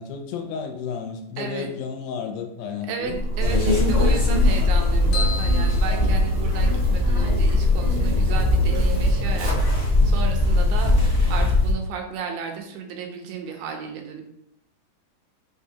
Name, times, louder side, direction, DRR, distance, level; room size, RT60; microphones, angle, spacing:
voice 1, 0.0-3.6, left 6 dB, 90° left, 4 dB, 2.4 m, -33 dB
voice 2, 1.4-1.7 2.9-14.2, right 6 dB, 80° right, 3 dB, 2.5 m, -33 dB
Zipper (clothing), 3.0-10.5, right 2 dB, 65° right, 0.8 m, -31 dB
sound 1, 3.4-11.7, left 2 dB, 35° left, 0.7 m, -20 dB
sound 2, 5.1-6.9, left 4 dB, 70° left, 1.6 m, -34 dB
5.6 x 3.2 x 2.8 m, 0.79 s
omnidirectional pair, 4.0 m